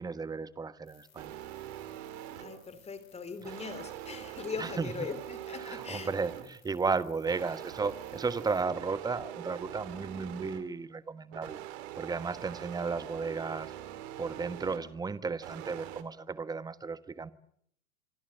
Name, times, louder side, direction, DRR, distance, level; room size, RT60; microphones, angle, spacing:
voice 1, 0.0-1.4 4.6-4.9 5.6-11.6 12.0-13.7 14.2-17.3, right 4 dB, 10° right, 1.3 m, -34 dB
sound 1, 0.8-8.6, left 7 dB, 75° left, 5.9 m, -63 dB
sound 2, 1.2-2.7 3.4-6.7 7.3-10.8 11.3-15.0 15.4-16.0, right 12 dB, 50° right, 3.0 m, -43 dB
voice 2, 2.3-6.1, left 5 dB, 15° left, 2.8 m, -40 dB
25.5 x 25.0 x 7.7 m
figure-of-eight pair, 100°, 42 cm